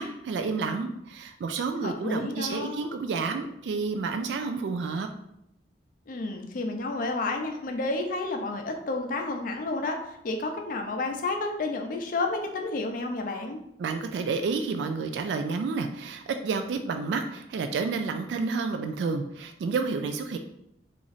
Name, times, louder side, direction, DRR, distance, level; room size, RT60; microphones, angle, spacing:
voice 1, 0.0-5.1 13.8-20.4, right 4 dB, 80° right, 6 dB, 0.3 m, -30 dB
voice 2, 1.8-2.9 6.1-13.6, left 2 dB, 50° left, 3 dB, 0.5 m, -31 dB
3.0 x 2.5 x 4.0 m, 0.79 s
head